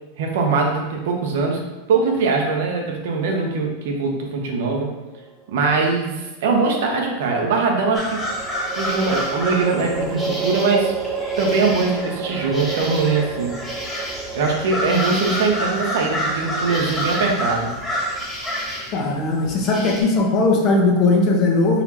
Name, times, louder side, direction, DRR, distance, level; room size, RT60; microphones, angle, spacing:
voice 1, 0.2-1.6 1.9-4.9 5.5-8.2 8.8-10.9 11.4-13.6 14.3-17.7, right 4 dB, 75° right, 1 dB, 0.9 m, -21 dB
sound 1, 5.1-6.0 8.2-19.5, right 5 dB, 15° right, 0.3 m, -31 dB
sound 2, 7.9-20.0, equal, 5° left, 1.4 m, -28 dB
voice 2, 18.9-21.8, left 3 dB, 40° left, 0 dB, 1.0 m, -18 dB
4.3 x 4.2 x 2.9 m, 1.1 s
supercardioid pair, 140°, 0 cm